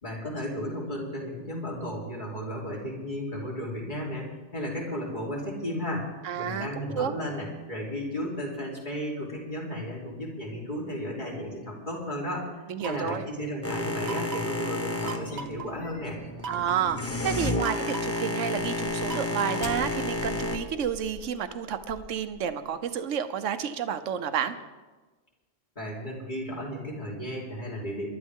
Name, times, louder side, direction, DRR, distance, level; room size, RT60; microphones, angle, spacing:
voice 1, 0.0-6.1 6.4-12.5 12.8-16.2 25.8-28.1, equal, 40° left, -4 dB, 3.7 m, -34 dB
voice 2, 6.2-6.7 7.0-7.1 12.7-13.3 16.5-24.6, right 8 dB, 85° right, 10 dB, 1.1 m, -30 dB
sound 1, 12.8-13.3 14.0-14.6 15.1-15.7 16.4-16.9 17.6-18.3 19.1-19.9, right 5 dB, 60° right, 1.1 m, -39 dB
Boat Water vehicle, 13.6-20.6, left 2 dB, 15° left, 0.9 m, -31 dB
sound 2, 14.9-17.4 17.9-18.1 18.6-22.8, left 2 dB, 65° left, 1.3 m, -46 dB
23.5 x 12.0 x 3.6 m, 1.3 s
omnidirectional pair, 1.2 m